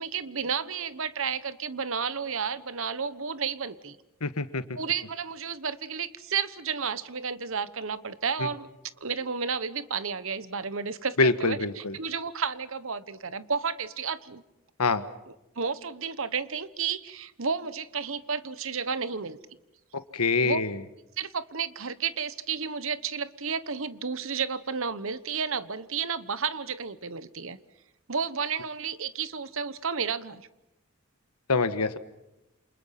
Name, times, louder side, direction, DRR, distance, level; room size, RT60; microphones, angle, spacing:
voice 1, 0.0-4.0 4.8-8.7 9.0-14.4 15.3-19.4 20.4-20.6 21.2-27.6 28.1-30.4, right 6 dB, 60° right, 14 dB, 1.1 m, -32 dB
voice 2, 4.2-4.6 11.2-11.9 14.8-15.0 20.1-20.7 31.5-32.0, left 3 dB, 85° left, 11 dB, 1.4 m, -25 dB
28.5 x 28.0 x 5.9 m, 0.91 s
head